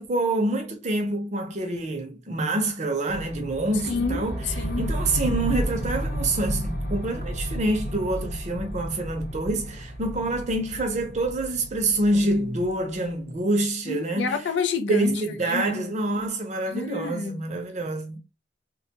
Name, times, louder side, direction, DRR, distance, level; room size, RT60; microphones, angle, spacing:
voice 1, 0.0-4.4 4.8-14.3 14.9-18.2, right 2 dB, 40° right, 0.6 m, -26 dB
sound 1, 3.1-13.2, equal, 55° left, 0.9 m, -32 dB
voice 2, 3.8-4.9 13.9-15.2 15.5-15.9 16.7-17.4, left 4 dB, 80° left, 0.4 m, -29 dB
2.2 x 2.2 x 2.8 m
head